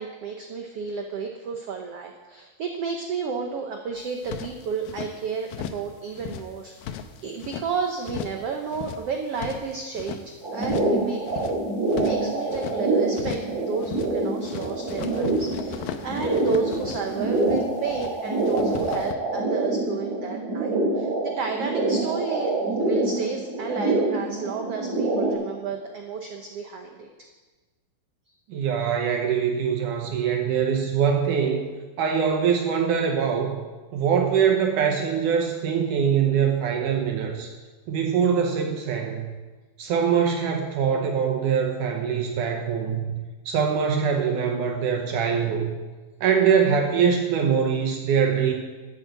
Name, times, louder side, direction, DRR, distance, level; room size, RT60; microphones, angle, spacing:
voice 1, 0.0-11.4 12.0-27.1, right 5 dB, 85° right, 3 dB, 1.3 m, -32 dB
sound 1, 4.0-5.1 5.5-5.9 6.1-7.7 8.0-8.4 8.7-10.2 10.6-11.0 11.2-12.8 13.1-13.6 13.8-14.2 14.4-18.1 18.4-19.1, left 9 dB, 85° left, 2.5 m, -37 dB
sound 2, 10.4-25.3, right 2 dB, 30° right, 3.0 m, -26 dB
voice 2, 28.5-31.6 32.0-33.6 33.9-37.5 37.9-39.3 39.8-43.1 43.5-45.7 46.2-48.5, right 7 dB, 70° right, 3 dB, 2.4 m, -23 dB
11.0 x 8.4 x 8.1 m, 1.3 s
omnidirectional pair, 4.1 m